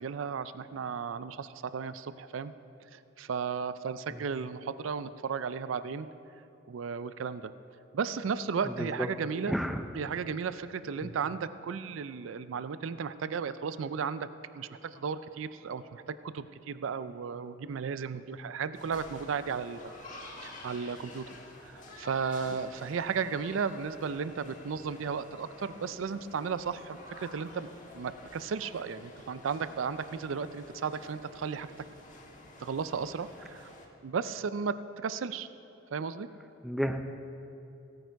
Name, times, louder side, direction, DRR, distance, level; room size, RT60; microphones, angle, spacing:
voice 1, 0.0-2.5 2.9-6.1 6.7-7.5 7.9-9.6 10.0-14.3 14.5-19.8 20.4-21.3 21.7-27.7 27.9-31.7 32.6-33.7 34.0-35.5 35.9-36.3, right 6 dB, 85° right, 13 dB, 0.4 m, -34 dB
voice 2, 8.6-9.1 9.5-9.8 11.0-11.1 36.6-37.0, equal, ahead, 6 dB, 0.5 m, -32 dB
sound 1, 18.7-33.9, left 1 dB, 40° left, 1.4 m, -50 dB
16.0 x 8.9 x 4.6 m, 2.7 s
head